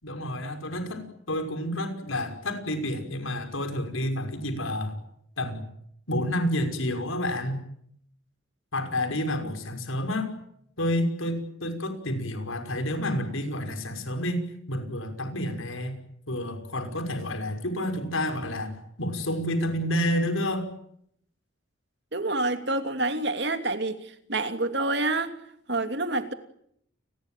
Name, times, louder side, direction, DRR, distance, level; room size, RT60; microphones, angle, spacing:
voice 1, 0.0-5.0 5.4-5.6 6.1-7.6 8.7-10.4 10.8-16.0 16.3-20.7, left 1 dB, 90° left, 5.8 m, -29 dB
voice 2, 22.1-25.4 25.7-26.3, right 2 dB, 55° right, 2.8 m, -28 dB
29.5 x 21.0 x 9.2 m
head